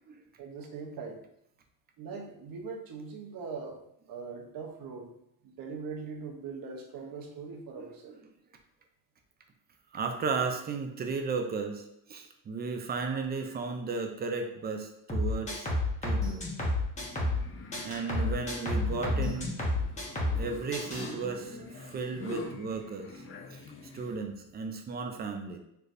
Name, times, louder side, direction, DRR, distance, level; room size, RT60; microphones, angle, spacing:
voice 1, 0.4-1.2 2.0-3.8 4.1-5.1 5.4-8.1, right 5 dB, 65° right, 1 dB, 0.9 m, -41 dB
voice 2, 7.7-8.2 9.9-15.7 16.0-16.5 17.8-19.5 20.4-23.2 23.5-23.6 23.9-25.6, right 4 dB, 25° right, 4 dB, 0.5 m, -35 dB
sound 1, 15.1-17.4 17.7-20.4 20.7-21.1, left 2 dB, 20° left, 1.1 m, -30 dB
sound 2, 17.0-24.2, left 3 dB, 35° left, 0.5 m, -45 dB
4.5 x 3.3 x 2.6 m, 0.76 s
cardioid pair, 140°, 38 cm